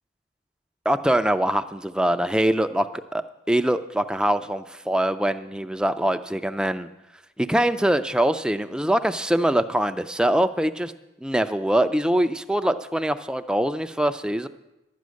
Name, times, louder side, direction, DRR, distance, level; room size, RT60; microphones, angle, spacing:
voice 1, 0.9-6.9 7.4-10.9 11.2-14.5, right 1 dB, 5° right, 9 dB, 0.3 m, -23 dB
11.5 x 9.4 x 6.3 m, 0.99 s
head